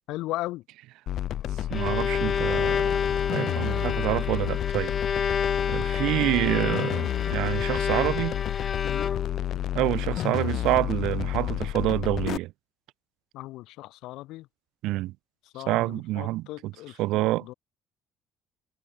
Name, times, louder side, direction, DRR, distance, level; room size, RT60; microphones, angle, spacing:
voice 1, 0.1-0.6 8.8-9.1 13.3-14.5 15.5-17.5, left 18 dB, 80° left, 4.4 m, -37 dB
sound 1, 1.1-12.4, left 12 dB, 50° left, 1.6 m, -30 dB
Bowed string instrument, 1.5-9.5, left 6 dB, 30° left, 1.3 m, -29 dB
voice 2, 1.7-2.9 3.3-5.4 5.7-8.4 9.7-12.5 14.8-15.1 15.7-16.7 17.0-17.5, right 18 dB, 80° right, 3.8 m, -27 dB
cardioid pair, 160°, 0 cm